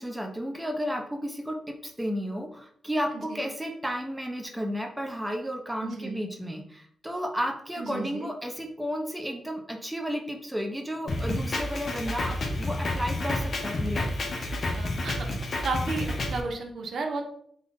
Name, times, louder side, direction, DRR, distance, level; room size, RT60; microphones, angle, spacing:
voice 1, 0.0-14.1, equal, 10° right, 3 dB, 0.9 m, -33 dB
voice 2, 3.1-3.5 5.8-6.2 7.8-8.3 14.7-15.3 15.6-17.2, right 3 dB, 70° right, 3 dB, 0.7 m, -33 dB
Drum kit, 11.1-16.4, left 2 dB, 60° left, 0.8 m, -30 dB
3.8 x 2.4 x 3.7 m, 0.64 s
supercardioid pair, 50°, 0 cm